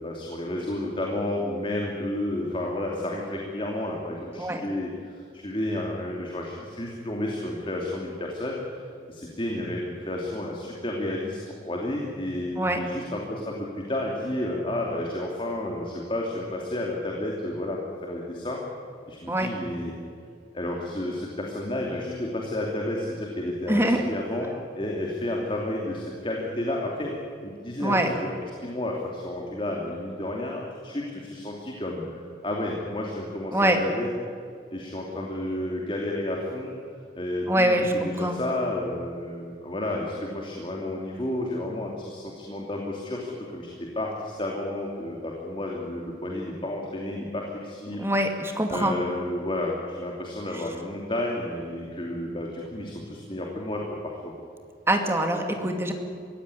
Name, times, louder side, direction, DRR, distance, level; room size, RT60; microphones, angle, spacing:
voice 1, 0.0-8.8 9.1-18.6 19.1-19.9 20.5-34.1 34.7-36.7 37.1-48.1 48.7-54.3, left 1 dB, 30° left, -1 dB, 2.8 m, -31 dB
voice 2, 23.7-24.0 27.8-28.1 33.5-33.8 37.5-38.4 48.0-49.0 54.9-55.9, right 1 dB, 15° right, 4 dB, 2.3 m, -24 dB
24.0 x 16.5 x 9.9 m, 2.3 s
head